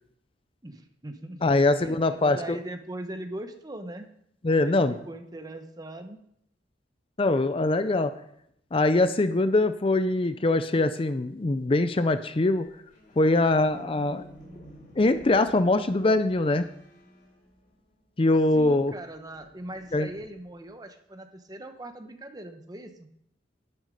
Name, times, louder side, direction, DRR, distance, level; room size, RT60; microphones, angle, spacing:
voice 1, 0.6-1.5 1.8-4.1 4.6-6.2 18.5-23.1, right 1 dB, 20° right, 7 dB, 1.0 m, -40 dB
voice 2, 1.4-2.6 4.4-5.0 7.2-8.1 8.7-12.7 13.2-14.3 15.0-16.7 18.2-18.9 19.9-20.1, left 2 dB, 30° left, 11 dB, 0.5 m, -23 dB
sound 1, 12.5-18.1 18.4-20.6, equal, 50° left, 4.0 m, -52 dB
10.5 x 9.5 x 5.0 m, 0.72 s
head